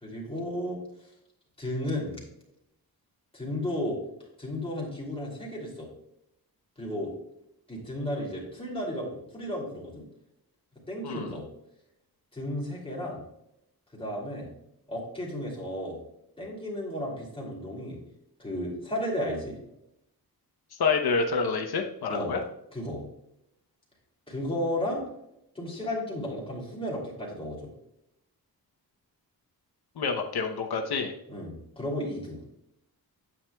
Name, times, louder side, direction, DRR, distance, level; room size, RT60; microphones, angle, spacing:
voice 1, 0.0-0.8 1.6-2.2 3.3-4.0 4.4-5.9 6.8-7.1 7.7-10.0 10.9-11.4 12.3-13.2 13.9-14.5 14.9-16.0 16.4-18.0 18.4-19.6 22.1-22.3 22.7-23.0 24.3-25.0 25.5-27.7 31.3-32.4, left 1 dB, 15° left, -3 dB, 2.6 m, -33 dB
voice 2, 11.0-11.4 20.8-22.4 30.0-31.1, left 4 dB, 85° left, 4 dB, 0.9 m, -28 dB
8.8 x 8.4 x 2.2 m, 0.81 s
wide cardioid pair, 175°, 37 cm